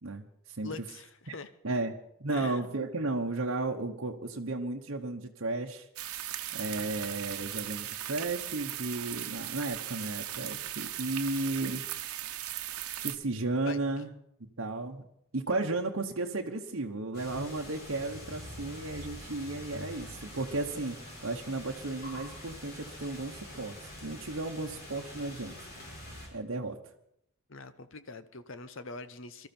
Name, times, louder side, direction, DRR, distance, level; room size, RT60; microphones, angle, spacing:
voice 1, 0.0-0.7 1.6-1.9 2.2-5.9 6.5-11.8 13.0-14.1 14.4-15.1 15.3-23.8 24.0-25.5 26.3-26.8, right 2 dB, 65° right, 1 dB, 1.0 m, -34 dB
voice 2, 0.6-1.5 2.3-2.7 13.6-13.8 27.5-29.5, left 3 dB, 60° left, 12 dB, 0.9 m, -43 dB
sound 1, 6.0-13.2, right 12 dB, 90° right, 0.9 m, -38 dB
sound 2, 17.1-26.3, left 1 dB, 45° left, 5.0 m, -45 dB
22.5 x 13.0 x 4.4 m, 0.75 s
head